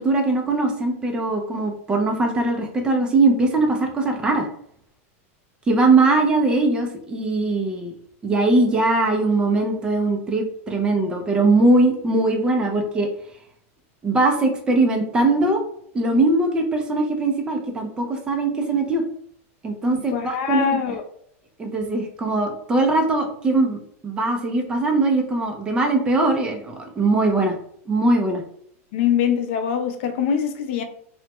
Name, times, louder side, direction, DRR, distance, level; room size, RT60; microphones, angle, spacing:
voice 1, 0.0-4.5 5.7-7.9 8.2-13.1 14.0-15.6 15.9-19.0 19.6-20.7 21.6-27.6 27.9-28.4, right 2 dB, 10° right, 3 dB, 0.4 m, -21 dB
voice 2, 19.9-21.0 28.9-30.8, left 8 dB, 55° left, 7 dB, 0.5 m, -23 dB
3.1 x 2.1 x 2.9 m, 0.66 s
supercardioid pair, 160°, 8 cm